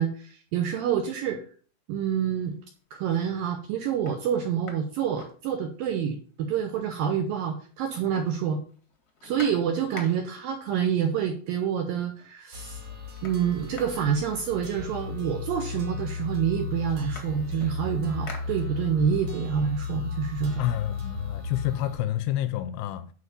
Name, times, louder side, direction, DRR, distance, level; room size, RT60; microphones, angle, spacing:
voice 1, 0.0-1.4 1.9-2.6 2.9-8.6 9.2-12.8 13.2-20.6, right 8 dB, 75° right, 2.1 m, -27 dB
sound 1, 2.5-3.0 3.5-3.6 3.9-6.0 6.3-6.4 6.7-7.5 7.8-10.5 11.5-11.6 11.9-12.4 12.7-15.1 15.9-16.0 16.3-19.1 19.5-21.3, left 4 dB, 60° left, 0.9 m, -48 dB
sound 2, 12.5-22.0, left 5 dB, 45° right, 4.2 m, -35 dB
voice 2, 20.6-23.1, left 13 dB, 85° left, 2.4 m, -29 dB
10.5 x 4.8 x 5.3 m
omnidirectional pair, 5.0 m